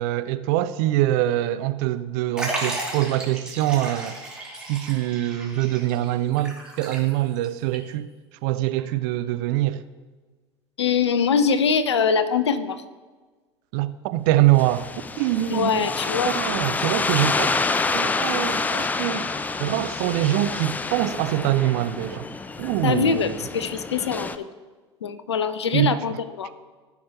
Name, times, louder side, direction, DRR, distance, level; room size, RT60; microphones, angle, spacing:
voice 1, 0.0-4.4 4.7-8.1 8.4-9.8 13.7-15.9 16.2-17.6 17.9-19.3 19.6-22.3 22.6-23.5 25.7-26.2, right 14 dB, 50° right, 0.5 m, -24 dB
Liquid, 2.4-7.5 7.7-7.8 8.8-8.9, right 1 dB, 5° right, 2.7 m, -34 dB
voice 2, 10.8-12.8 15.5-16.3 22.8-24.5 25.0-26.5, left 6 dB, 75° left, 0.6 m, -23 dB
sound 1, 14.6-24.4, left 3 dB, 10° left, 0.4 m, -28 dB
15.0 x 6.3 x 3.0 m
figure-of-eight pair, 75°, 14 cm